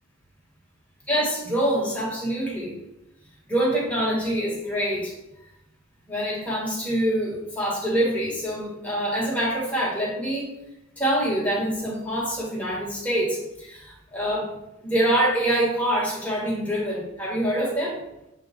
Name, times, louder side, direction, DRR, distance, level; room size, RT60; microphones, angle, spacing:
voice 1, 1.1-2.8 3.5-5.1 6.1-10.5 11.0-14.5 14.8-18.0, right 1 dB, 5° left, -6 dB, 1.9 m, -25 dB
7.7 x 3.8 x 3.8 m, 0.86 s
head